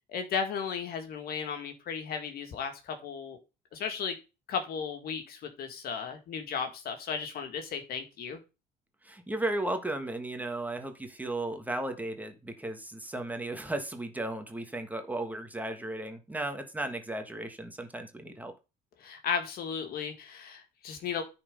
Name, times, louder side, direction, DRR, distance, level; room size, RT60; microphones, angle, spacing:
voice 1, 0.1-3.4 3.7-4.2 4.5-8.4 19.0-21.2, left 6 dB, 65° left, 6 dB, 2.0 m, -35 dB
voice 2, 9.0-18.5, right 2 dB, 10° right, 6 dB, 1.5 m, -35 dB
9.8 x 4.4 x 5.3 m, 0.29 s
cardioid pair, 110°, 17 cm